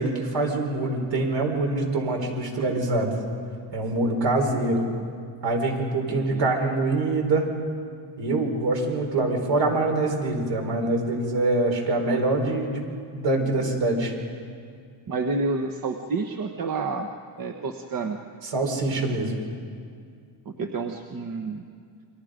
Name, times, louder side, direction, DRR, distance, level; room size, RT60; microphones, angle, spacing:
voice 1, 0.0-3.2 3.7-4.8 5.4-7.5 8.2-12.9 13.1-14.1 18.5-19.3, right 2 dB, 60° right, 2 dB, 4.9 m, -24 dB
voice 2, 3.9-4.2 6.1-6.5 15.1-17.1 17.4-18.2 20.4-21.6, right 3 dB, 45° right, 4 dB, 1.2 m, -30 dB
29.5 x 24.0 x 5.2 m, 2.2 s
cardioid pair, 140°, 48 cm